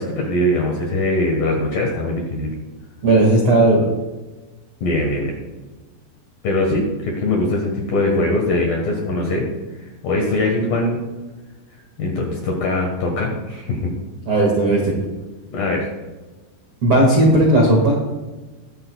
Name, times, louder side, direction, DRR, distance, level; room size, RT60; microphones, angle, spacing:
voice 1, 0.0-2.5 4.8-5.4 6.4-9.5 10.0-11.0 12.0-13.9 15.5-15.8, left 1 dB, 65° left, 0 dB, 2.4 m, -21 dB
voice 2, 3.0-3.9 14.2-14.9 16.8-18.0, right 1 dB, 70° right, -3 dB, 1.3 m, -15 dB
21.5 x 7.8 x 2.3 m, 1.2 s
omnidirectional pair, 5.9 m